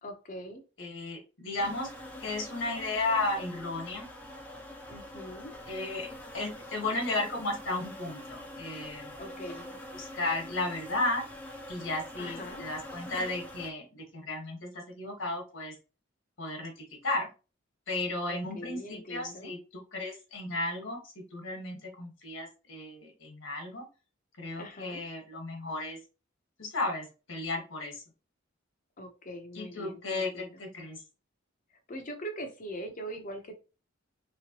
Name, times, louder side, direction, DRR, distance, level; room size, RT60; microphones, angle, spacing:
voice 1, 0.0-0.6 4.9-5.5 9.2-9.7 12.2-12.6 18.3-19.5 24.6-25.0 29.0-30.6 31.9-33.5, equal, 45° left, 5 dB, 0.8 m, -42 dB
voice 2, 0.8-1.9 2.2-4.1 5.7-6.1 6.3-9.1 9.9-11.2 11.7-15.7 16.4-16.7 17.0-17.3 17.9-21.0 21.3-23.9 24.4-26.0 26.6-28.0 29.5-31.0, left 2 dB, 70° left, 2 dB, 1.4 m, -34 dB
sound 1, 1.6-13.7, left 1 dB, 10° left, 0.7 m, -45 dB
3.4 x 3.1 x 2.9 m, 0.32 s
head